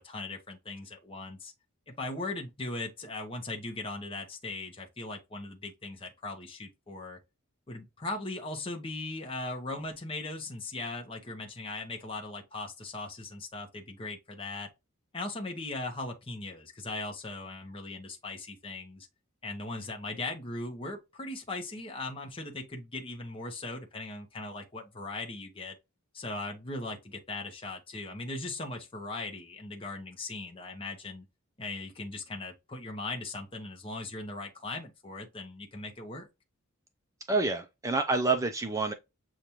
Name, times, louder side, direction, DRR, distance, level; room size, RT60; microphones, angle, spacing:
voice 1, 0.0-1.5 1.9-7.2 7.7-14.7 15.1-19.1 19.4-25.7 26.1-31.2 31.6-36.3, left 2 dB, 25° left, 0.8 m, -39 dB
voice 2, 37.3-38.9, right 3 dB, 15° right, 0.4 m, -28 dB
6.8 x 2.5 x 2.9 m
head